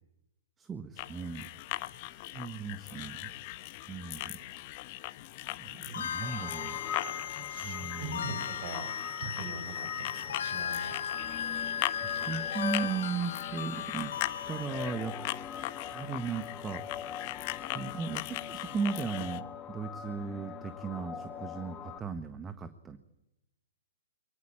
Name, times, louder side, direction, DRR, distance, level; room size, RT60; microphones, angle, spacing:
voice 1, 0.6-1.4 2.1-3.3 3.9-4.4 5.6-6.8 7.4-8.3 11.8-14.1 14.5-15.1 15.9-16.8 17.7-23.0, right 5 dB, 15° right, 10 dB, 1.5 m, -37 dB
sound 1, 1.0-19.4, left 18 dB, 40° left, 1.2 m, -40 dB
sound 2, 5.9-14.7, left 8 dB, 65° left, 0.9 m, -37 dB
sound 3, 6.2-22.0, left 8 dB, 25° left, 1.5 m, -43 dB
voice 2, 7.5-8.9 9.2-11.0, right 4 dB, 45° right, 11 dB, 5.6 m, -42 dB
23.5 x 21.0 x 8.6 m, 0.88 s
figure-of-eight pair, 115°, 0 cm